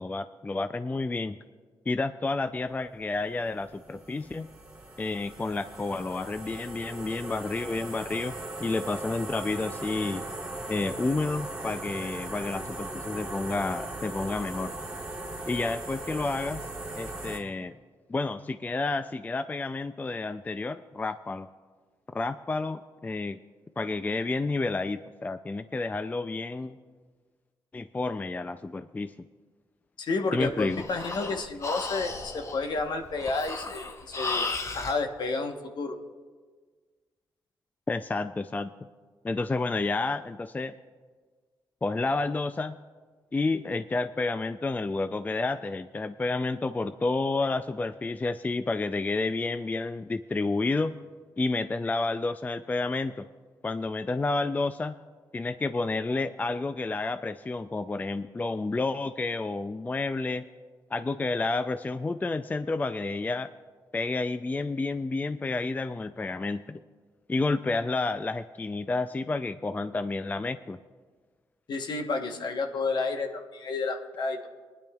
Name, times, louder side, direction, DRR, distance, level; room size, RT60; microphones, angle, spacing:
voice 1, 0.0-1.4 1.9-4.5 5.0-8.3 8.6-10.2 10.7-14.7 15.5-16.7 16.9-17.7 18.1-21.5 22.1-23.4 23.8-26.8 27.7-29.1 30.3-30.8 37.9-38.7 39.2-40.7 41.8-42.8 43.3-51.0 51.4-53.3 53.6-55.0 55.3-60.4 60.9-63.5 63.9-66.8 67.3-70.8, left 3 dB, 20° left, 11 dB, 0.3 m, -30 dB
sound 1, 3.0-17.4, right 2 dB, 15° right, 2.7 m, -39 dB
voice 2, 30.0-33.9 34.1-36.0 71.7-74.5, left 3 dB, 60° left, 5 dB, 1.1 m, -31 dB
Breathing, 30.4-35.0, left 3 dB, 35° left, 0.8 m, -35 dB
22.0 x 10.5 x 2.3 m, 1.5 s
cardioid pair, 65°, 8 cm